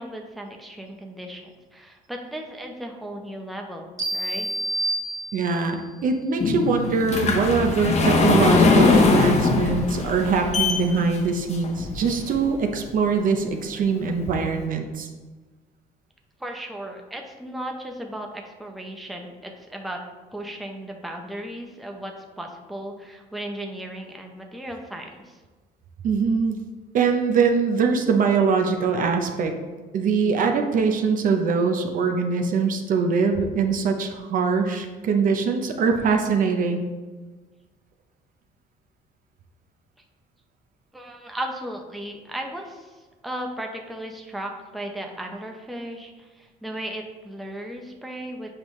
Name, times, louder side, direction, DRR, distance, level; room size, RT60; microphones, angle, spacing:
voice 1, 0.0-4.5 16.4-20.0 20.3-25.4 40.9-48.5, right 1 dB, ahead, 2 dB, 0.7 m, -36 dB
sound 1, 4.0-5.8, right 2 dB, 20° right, 1.3 m, -28 dB
voice 2, 5.3-15.1 26.0-26.6 26.9-29.5 29.9-36.8, right 5 dB, 55° right, 4 dB, 0.7 m, -22 dB
sound 2, 6.4-12.5 13.1-13.2 13.8-13.9 14.2-14.3, left 3 dB, 40° left, 0.9 m, -21 dB
7.4 x 4.8 x 3.1 m, 1.3 s
cardioid pair, 110°, 17 cm